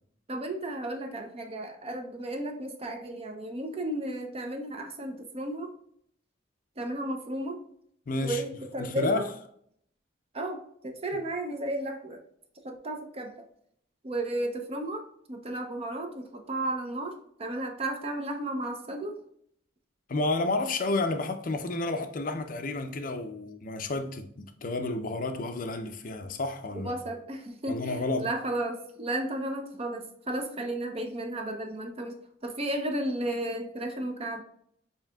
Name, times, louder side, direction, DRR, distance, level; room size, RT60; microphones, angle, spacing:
voice 1, 0.3-5.7 6.8-7.6 8.2-9.3 10.3-12.2 12.6-13.3 14.0-15.0 15.3-17.1 17.4-19.2 26.8-27.9 28.2-34.4, right 1 dB, 30° right, 0.6 m, -33 dB
voice 2, 8.1-8.4 8.8-9.3 20.1-27.0 27.7-28.3, left 2 dB, 45° left, 0.5 m, -31 dB
7.1 x 2.8 x 2.3 m
head